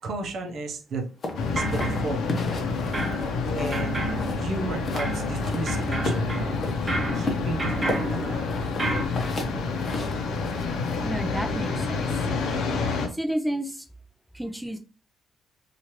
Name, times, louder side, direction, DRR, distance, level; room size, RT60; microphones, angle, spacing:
voice 1, 0.0-1.1 1.5-2.6 3.5-4.0 4.4-6.6 7.1-8.5, right 2 dB, 65° right, 4 dB, 0.6 m, -33 dB
sound 1, 1.2-3.9 4.2-5.1 5.4-6.8 7.2-11.0, left 2 dB, 40° left, 0.7 m, -34 dB
sound 2, 1.3-13.1, left 4 dB, 75° left, 0.6 m, -29 dB
sound 3, 1.3-2.6 2.9-9.1, right 2 dB, 30° right, 1.2 m, -32 dB
voice 2, 9.4-9.9 11.0-12.3 13.1-13.9 14.3-14.8, right 1 dB, 5° right, 5 dB, 0.4 m, -31 dB
3.0 x 2.4 x 2.9 m, 0.36 s
cardioid pair, 90°, 0 cm